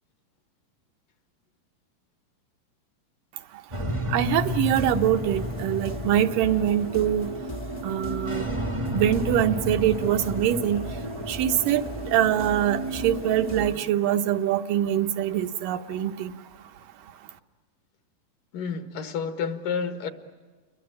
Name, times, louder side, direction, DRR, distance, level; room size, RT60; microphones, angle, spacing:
sound 1, 3.7-13.7, equal, 20° right, 0.7 m, -32 dB
voice 1, 4.1-7.3 7.8-8.5 8.9-10.8 11.3-16.3, right 10 dB, 75° right, 2.5 m, -24 dB
sound 2, 4.4-13.8, equal, 25° left, 0.8 m, -41 dB
voice 2, 13.5-13.8 18.5-20.1, left 6 dB, 70° left, 3.0 m, -30 dB
30.0 x 22.5 x 8.8 m
omnidirectional pair, 4.1 m